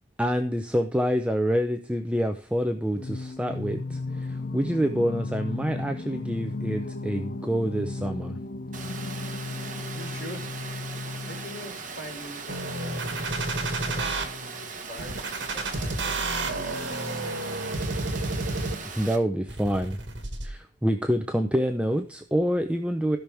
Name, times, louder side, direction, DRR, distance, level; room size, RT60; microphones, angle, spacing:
voice 1, 0.2-8.4 19.0-20.0 20.4-23.2, equal, 5° right, 5 dB, 0.6 m, -27 dB
Singing, 2.9-11.9, left 3 dB, 50° left, 0.7 m, -35 dB
Water, 8.7-19.2, right 4 dB, 45° right, 1.6 m, -39 dB
voice 2, 9.9-10.6 11.3-13.3 13.8-17.6, left 1 dB, 85° left, 1 dB, 3.8 m, -43 dB
sound 1, 12.5-14.2 15.0-19.0 19.5-20.5, right 2 dB, 70° right, 2.0 m, -31 dB
16.0 x 6.1 x 3.5 m, 0.43 s
head